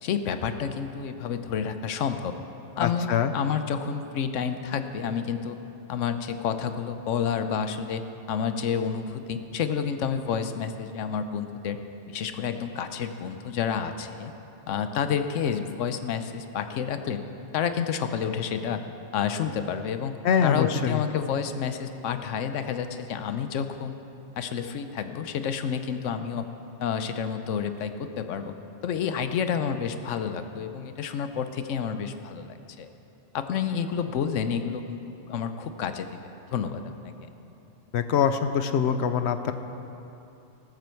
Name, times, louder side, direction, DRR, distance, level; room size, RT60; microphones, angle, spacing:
voice 1, 0.0-2.3 2.8-5.6 5.9-8.0 8.3-11.8 12.1-14.3 14.7-17.2 17.5-18.8 19.1-24.0 24.4-26.5 26.8-28.5 28.8-32.9 33.3-35.0 35.3-37.1, left 7 dB, 90° left, 9 dB, 1.0 m, -29 dB
voice 2, 2.8-3.3 20.2-21.0 37.9-39.5, left 7 dB, 70° left, 10 dB, 0.9 m, -24 dB
14.0 x 7.7 x 6.9 m, 2.9 s
omnidirectional pair, 1.2 m